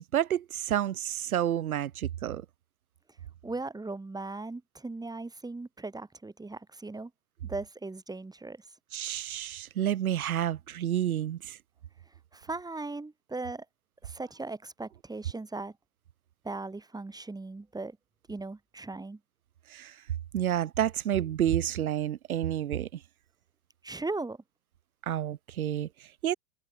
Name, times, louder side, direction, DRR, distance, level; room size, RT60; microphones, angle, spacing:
voice 1, 0.0-2.4 8.9-11.6 19.7-19.9 20.3-22.9 25.1-25.9 26.2-26.3, right 11 dB, 80° right, 2.8 m, -29 dB
voice 2, 3.4-7.1 7.4-8.6 12.3-13.6 14.0-15.7 16.4-18.0 18.3-19.2 23.8-24.4, right 3 dB, 10° right, 6.0 m, -38 dB
hypercardioid pair, 105°, 42 cm